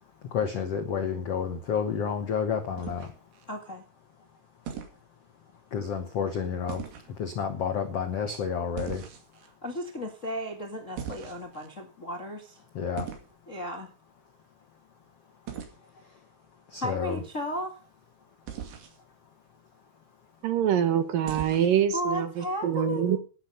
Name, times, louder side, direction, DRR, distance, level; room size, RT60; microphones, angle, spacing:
voice 1, 0.3-3.1 5.7-6.8 7.2-9.0 12.7-13.1 16.7-17.2, left 7 dB, 75° left, 7 dB, 1.4 m, -30 dB
sound 1, 2.8-3.5 4.7-5.0 6.7-7.1 8.8-9.5 11.0-11.7 13.0-13.3 15.5-15.8 18.5-19.0 21.3-21.8, right 8 dB, 85° right, 4.5 m, -39 dB
voice 2, 3.5-3.8 9.4-12.6 13.5-13.9 16.8-17.8 21.9-23.2, equal, 40° left, 3 dB, 1.0 m, -35 dB
voice 3, 20.4-23.2, right 9 dB, 65° right, 10 dB, 2.6 m, -25 dB
12.0 x 10.5 x 5.5 m, 0.36 s
omnidirectional pair, 4.7 m